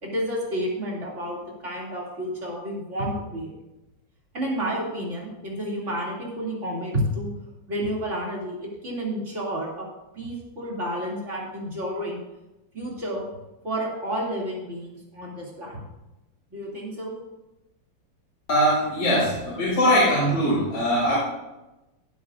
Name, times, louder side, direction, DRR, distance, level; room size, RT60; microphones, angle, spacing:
voice 1, 0.0-3.5 4.3-7.3 7.7-9.9 10.1-12.2 12.7-13.3 13.6-15.8 16.5-17.1, equal, 35° right, -4 dB, 2.9 m, -30 dB
voice 2, 18.5-21.2, equal, 75° left, -9 dB, 4.3 m, -21 dB
16.0 x 8.4 x 2.5 m, 0.99 s
omnidirectional pair, 2.1 m